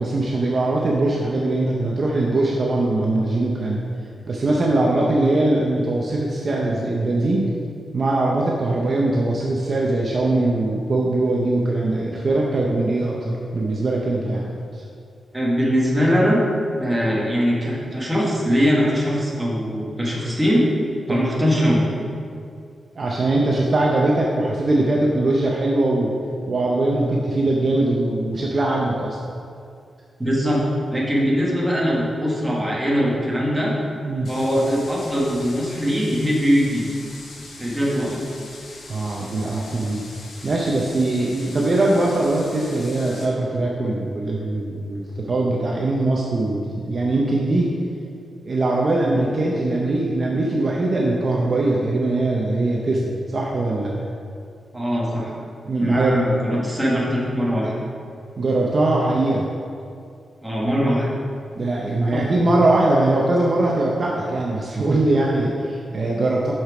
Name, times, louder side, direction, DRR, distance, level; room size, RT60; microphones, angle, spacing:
voice 1, 0.0-3.8 4.3-7.5 7.9-14.8 21.1-21.2 23.0-26.1 26.5-29.2 34.0-34.3 37.8-37.9 38.9-40.0 40.4-47.7 48.4-54.1 55.6-56.2 56.5-56.7 58.4-59.5 61.5-66.5, right 2 dB, 35° right, -3 dB, 0.6 m, -21 dB
voice 2, 15.3-16.4 16.8-20.6 21.1-21.9 30.2-30.6 30.9-33.7 34.3-36.9 37.6-38.2 54.7-55.3 55.7-57.7 60.4-61.1 62.1-62.4, equal, 5° right, -5 dB, 1.4 m, -21 dB
sound 1, 34.2-43.3, left 2 dB, 70° left, 1.1 m, -42 dB
6.3 x 5.9 x 4.9 m, 2.4 s
wide cardioid pair, 180°, 0 cm